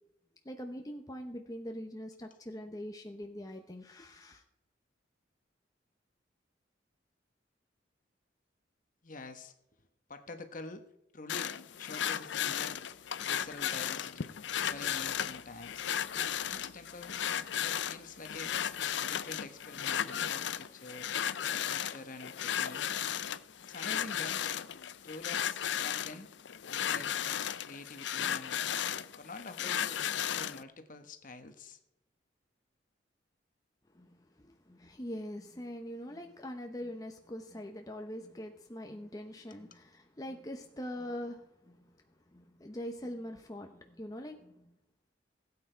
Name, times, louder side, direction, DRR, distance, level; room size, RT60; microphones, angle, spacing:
voice 1, 0.4-4.4 33.9-41.9 42.3-44.7, equal, 20° left, 3 dB, 0.9 m, -43 dB
voice 2, 9.0-9.8 10.1-10.8 11.1-12.8 13.2-15.9 16.5-17.2 17.6-18.6 18.9-21.1 21.6-22.8 23.6-24.5 25.0-26.3 26.6-28.6 29.2-31.8, left 3 dB, 45° left, 8 dB, 1.3 m, -47 dB
sound 1, 11.3-30.6, left 9 dB, 75° left, 0.5 m, -35 dB
16.5 x 8.8 x 4.5 m, 0.86 s
head